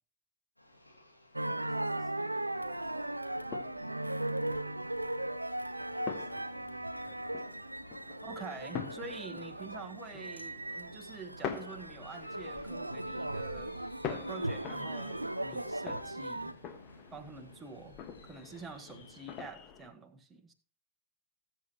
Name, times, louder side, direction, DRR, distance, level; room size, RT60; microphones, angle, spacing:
sound 1, 0.6-19.4, left 1 dB, 90° left, 2.0 m, -59 dB
sound 2, 1.3-16.5, right 1 dB, 85° right, 0.4 m, -38 dB
voice 1, 1.6-4.7 5.7-7.6, right 5 dB, 30° right, 2.7 m, -62 dB
sound 3, 2.5-19.9, left 8 dB, 35° left, 1.5 m, -46 dB
voice 2, 8.2-13.8 14.1-16.5 17.1-18.0 18.2-20.5, right 4 dB, 15° right, 1.4 m, -47 dB
19.5 x 7.0 x 3.0 m
figure-of-eight pair, 90°, 0 cm